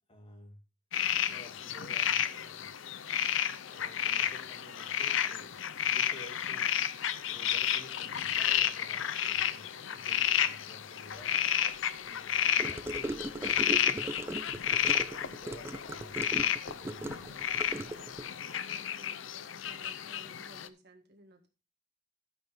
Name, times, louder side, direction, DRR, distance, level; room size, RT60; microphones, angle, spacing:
voice 1, 0.1-0.6 1.2-2.7 3.7-6.7 7.3-11.6 12.0-14.1 14.7-17.2, equal, 30° left, 3 dB, 2.2 m, -53 dB
sound 1, 0.9-20.7, left 10 dB, 75° left, 0.6 m, -32 dB
Gurgling / Car passing by / Sink (filling or washing), 12.6-18.3, right 1 dB, 15° right, 0.3 m, -38 dB
voice 2, 17.0-21.5, right 1 dB, 55° right, 4 dB, 1.7 m, -58 dB
14.0 x 5.9 x 3.4 m, 0.32 s
head